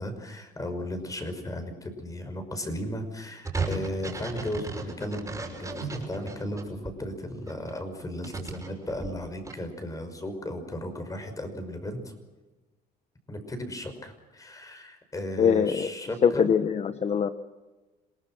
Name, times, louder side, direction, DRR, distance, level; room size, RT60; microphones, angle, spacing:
voice 1, 0.0-12.1 13.3-16.5, left 1 dB, 20° left, 7 dB, 5.7 m, -35 dB
sound 1, 3.4-6.9 7.4-9.5, right 4 dB, 20° right, 6.0 m, -35 dB
voice 2, 15.4-15.9 16.2-17.3, left 7 dB, 40° left, 10 dB, 1.1 m, -23 dB
28.0 x 19.0 x 6.2 m, 1.2 s
cardioid pair, 110°, 17 cm